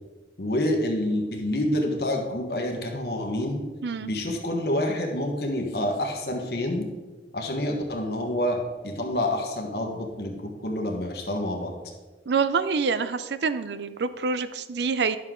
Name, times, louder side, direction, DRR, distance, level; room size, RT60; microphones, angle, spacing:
voice 1, 0.4-3.6 4.0-6.9 7.3-8.6 8.8-11.7, left 1 dB, 60° left, 2 dB, 1.3 m, -27 dB
voice 2, 12.3-15.2, right 5 dB, 75° right, 12 dB, 0.5 m, -26 dB
11.0 x 6.5 x 3.7 m, 1.3 s
head